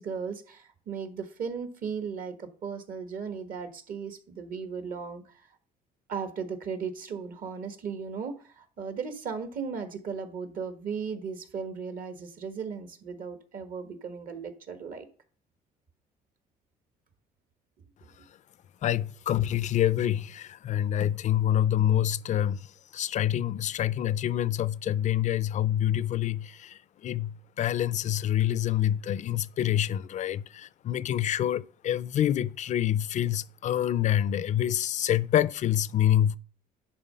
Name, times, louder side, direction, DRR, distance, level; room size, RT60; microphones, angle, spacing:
voice 1, 0.0-5.5 6.1-15.0, right 6 dB, 55° right, 1.5 m, -36 dB
voice 2, 18.8-36.4, left 11 dB, 45° left, 0.4 m, -27 dB
10.5 x 3.8 x 5.6 m
cardioid pair, 110°, 17 cm